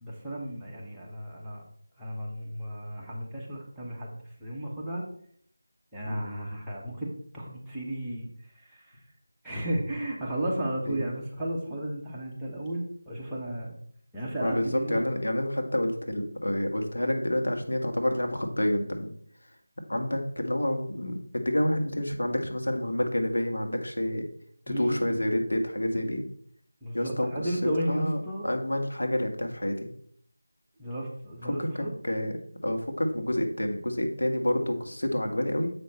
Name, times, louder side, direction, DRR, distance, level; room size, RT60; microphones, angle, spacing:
voice 1, 0.0-1.6 2.0-5.0 5.9-8.3 8.5-9.0 9.4-13.8 14.1-15.0 24.7-25.2 26.8-28.4 30.8-31.9, right 1 dB, 5° right, -7 dB, 1.2 m, -34 dB
voice 2, 14.4-19.1 19.9-24.2 24.7-26.2 26.9-27.5 27.9-29.9 31.4-32.4 32.6-35.7, left 1 dB, 80° left, 3 dB, 1.6 m, -28 dB
7.5 x 5.5 x 4.3 m, 0.63 s
figure-of-eight pair, 170°, 0 cm